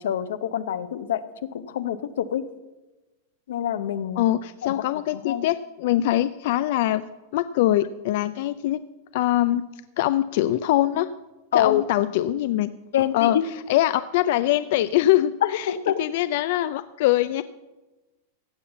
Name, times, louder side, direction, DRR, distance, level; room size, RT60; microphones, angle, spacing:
voice 1, 0.0-2.4 3.5-4.2 4.6-4.8 5.2-5.5 11.5-11.8 12.9-13.4 15.4-16.0, left 10 dB, 85° left, 12 dB, 0.9 m, -26 dB
voice 2, 4.2-7.0 7.3-8.8 9.1-9.7 10.0-11.1 11.5-12.7 13.1-13.4 13.7-15.7 16.0-17.4, left 14 dB, 60° left, 13 dB, 0.4 m, -23 dB
15.5 x 5.7 x 8.1 m, 1.1 s
supercardioid pair, 150°, 0 cm